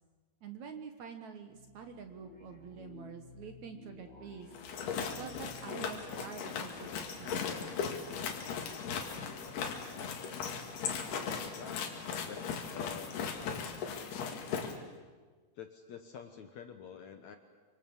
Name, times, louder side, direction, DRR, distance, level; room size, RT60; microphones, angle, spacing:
voice 1, 0.4-4.5 5.0-7.5, right 6 dB, 60° right, 6 dB, 2.3 m, -47 dB
sound 1, 1.5-8.7, left 4 dB, 45° left, 5.5 m, -55 dB
sound 2, 4.5-14.7, left 6 dB, 85° left, 4.2 m, -38 dB
voice 2, 11.6-12.0 12.2-13.3 15.6-17.4, left 7 dB, 65° left, 6 dB, 2.0 m, -48 dB
27.5 x 25.5 x 7.3 m, 1.4 s
omnidirectional pair, 4.5 m